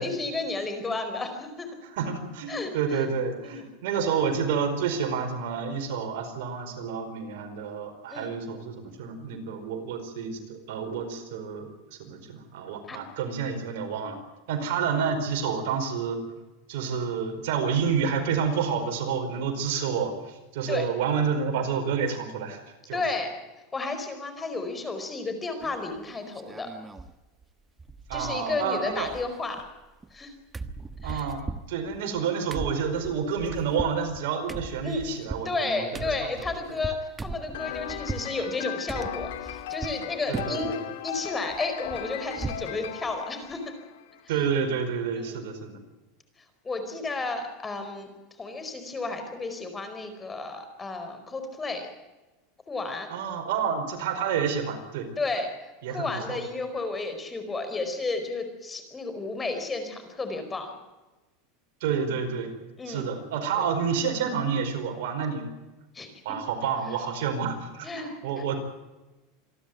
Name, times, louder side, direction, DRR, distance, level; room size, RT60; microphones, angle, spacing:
voice 1, 0.0-1.7 2.5-3.0 3.4-3.6 8.1-8.3 12.9-13.0 20.7-20.9 22.9-23.3 23.7-26.7 28.1-29.6 30.1-30.3 31.0-31.3 34.8-35.0 35.4-43.7 45.2-45.4 46.6-48.1 48.4-51.9 52.7-53.1 55.2-55.5 55.9-60.7 62.8-63.1 63.5-63.6 65.9-66.1 67.8-68.1, left 3 dB, 15° left, 7 dB, 4.7 m, -32 dB
voice 2, 1.8-11.7 12.0-14.2 14.5-16.2 16.7-22.6 22.9-23.0 28.1-29.1 31.0-31.4 31.7-36.1 40.3-40.8 44.3-45.8 53.1-55.1 55.8-56.4 61.8-62.5 62.9-65.5 66.2-68.6, right 6 dB, 70° right, 6 dB, 4.8 m, -29 dB
sound 1, 25.6-26.0 26.3-27.1 27.4-27.5 27.8-28.6 28.9-30.2 30.5-38.3 38.9-40.0 40.3-40.8 41.1-42.7 43.1-43.2 43.5-43.7, right 3 dB, 15° right, 1.2 m, -39 dB
sound 2, 37.5-44.2, left 11 dB, 80° left, 2.5 m, -37 dB
27.0 x 12.0 x 9.5 m, 1.1 s
supercardioid pair, 130°, 0 cm